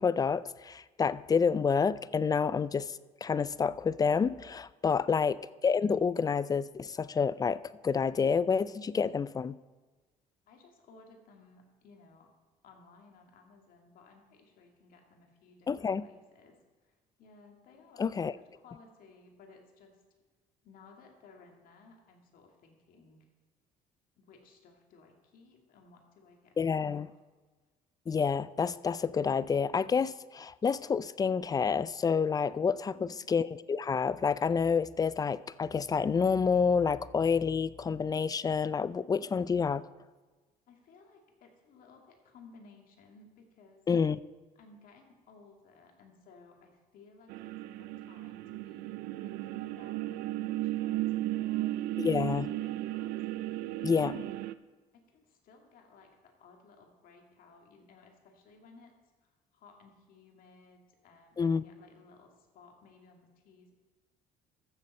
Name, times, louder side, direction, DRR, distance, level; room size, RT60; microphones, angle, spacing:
voice 1, 0.0-9.6 15.7-16.1 18.0-18.3 26.6-27.1 28.1-39.9 43.9-44.2 52.0-52.5 53.8-54.2 61.4-61.6, left 6 dB, 25° left, 18 dB, 0.4 m, -29 dB
voice 2, 10.5-12.3 12.6-20.0 20.6-23.3 24.2-27.1 32.9-33.3 40.7-43.8 44.6-47.5 47.8-49.0 49.2-54.3 54.9-58.9 59.2-63.7, left 3 dB, 65° left, 2 dB, 2.2 m, -58 dB
sound 1, 47.3-54.5, right 16 dB, 80° right, 0.4 m, -35 dB
14.5 x 6.7 x 4.2 m, 1.3 s
supercardioid pair, 85°, 15 cm